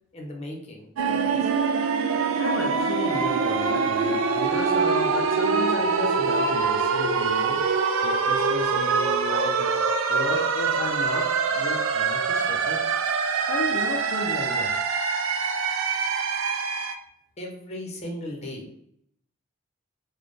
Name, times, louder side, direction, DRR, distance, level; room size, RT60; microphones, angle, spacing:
voice 1, 0.1-1.5 17.4-18.6, left 1 dB, 35° left, 0 dB, 0.7 m, -37 dB
sound 1, 1.0-17.0, right 5 dB, 80° right, 0.4 m, -24 dB
voice 2, 2.4-7.6 8.0-9.8 10.1-12.8 13.5-14.7, left 3 dB, 70° left, 2 dB, 0.4 m, -33 dB
4.1 x 2.2 x 3.1 m, 0.70 s
head